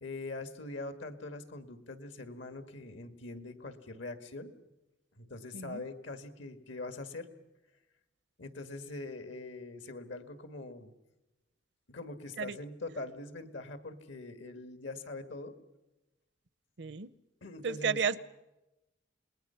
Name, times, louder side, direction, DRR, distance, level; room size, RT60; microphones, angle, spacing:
voice 1, 0.0-4.5 5.2-7.3 8.4-10.9 11.9-15.5 17.4-18.0, left 2 dB, 80° left, 10 dB, 1.8 m, -43 dB
voice 2, 5.5-5.8 12.4-12.5 16.8-17.1 17.6-18.2, right 6 dB, 65° right, 19 dB, 0.7 m, -32 dB
28.0 x 20.0 x 5.7 m, 1.0 s
head